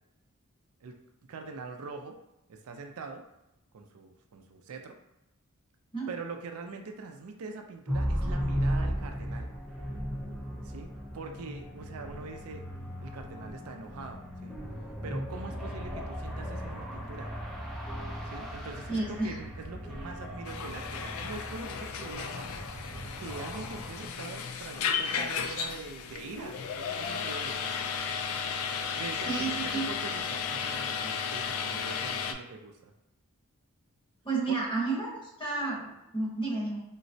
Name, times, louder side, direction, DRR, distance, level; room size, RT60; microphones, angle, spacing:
voice 1, 0.8-2.2 2.5-3.2 3.7-5.0 6.1-9.5 10.6-12.6 13.0-14.6 15.0-17.3 18.2-22.5 23.2-27.6 28.9-32.9 34.5-34.6, right 4 dB, 80° right, 4 dB, 0.4 m, -43 dB
sound 1, 7.9-24.0, equal, ahead, 0.5 m, -36 dB
voice 2, 18.9-19.3 29.2-29.9 34.2-36.8, right 3 dB, 20° left, -6 dB, 1.1 m, -31 dB
sound 2, 20.4-32.3, left 6 dB, 65° left, 0.3 m, -34 dB
3.8 x 2.1 x 2.6 m, 0.89 s
head